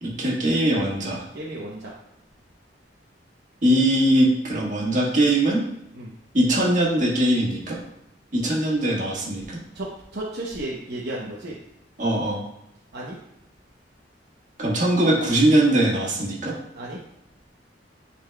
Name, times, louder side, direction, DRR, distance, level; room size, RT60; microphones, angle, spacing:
voice 1, 0.0-1.2 3.6-5.6 6.3-7.8 8.3-9.6 12.0-12.4 14.6-16.5, right 1 dB, 45° right, -4 dB, 1.7 m, -21 dB
voice 2, 1.3-1.8 5.9-6.1 9.7-11.6 12.9-13.1 16.7-17.0, right 1 dB, 65° right, -5 dB, 0.9 m, -33 dB
9.7 x 4.3 x 2.3 m, 0.81 s
head